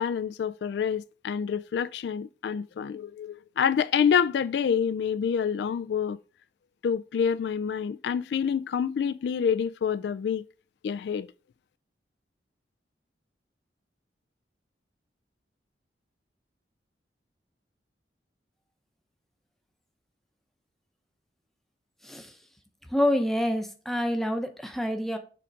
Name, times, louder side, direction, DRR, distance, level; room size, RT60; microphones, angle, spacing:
voice 1, 0.0-6.2 6.8-10.4 10.8-11.3, left 7 dB, 70° left, 0.3 m, -27 dB
voice 2, 22.9-25.2, left 1 dB, ahead, 0.7 m, -27 dB
6.8 x 3.6 x 5.2 m
head